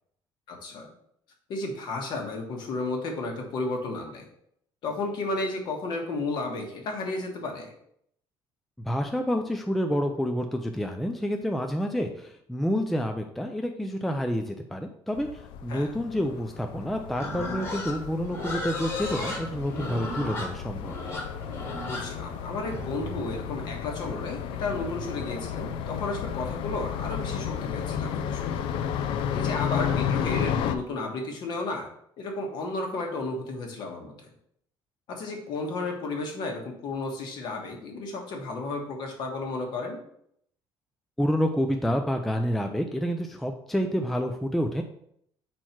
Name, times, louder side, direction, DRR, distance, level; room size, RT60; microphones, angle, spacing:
voice 1, 0.5-0.9 1.5-4.3 4.8-7.7 15.7-15.9 21.9-28.6 29.3-31.9 32.2-34.3 35.1-40.0, left 3 dB, 55° left, 2 dB, 1.4 m, -33 dB
voice 2, 8.8-20.9 41.2-44.8, equal, ahead, 4 dB, 0.3 m, -28 dB
sound 1, 15.1-30.7, left 8 dB, 70° left, 0.5 m, -33 dB
Livestock farm animals working animals, 17.1-23.2, left 2 dB, 25° left, 1.6 m, -35 dB
4.5 x 4.5 x 5.8 m, 0.70 s
cardioid pair, 165°, 9 cm